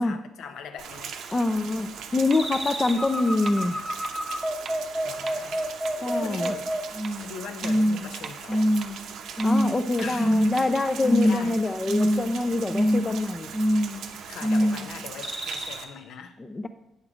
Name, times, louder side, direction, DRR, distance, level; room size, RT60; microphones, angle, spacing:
voice 1, 0.0-1.2 5.0-6.7 7.2-9.0 10.0-10.5 11.2-11.6 14.3-16.4, left 6 dB, 80° left, 0.7 m, -40 dB
Rain, 0.8-15.8, right 7 dB, 85° right, 0.7 m, -40 dB
voice 2, 1.3-3.8 6.0-6.5 9.4-13.5 16.5-16.7, left 2 dB, 25° left, 0.4 m, -25 dB
sound 1, 2.3-7.3 7.6-8.1 8.5-9.0 9.4-9.8 10.2-10.7 11.0-11.6 11.9-12.4 12.7-13.2 13.5-14.0 14.4-14.9 15.2-15.7, equal, 10° right, 1.0 m, -25 dB
sound 2, 2.3-2.4 2.9-3.0 3.5-3.6 4.0-4.1 4.6-4.7 5.3-5.4 5.8-5.9 6.4-6.5 7.0-7.1 7.6-7.7 8.2-8.3 8.8-8.9 9.4-9.5 10.0-10.1 10.6-10.7, right 6 dB, 55° right, 0.6 m, -39 dB
8.4 x 6.4 x 4.9 m
cardioid pair, 125°, 0 cm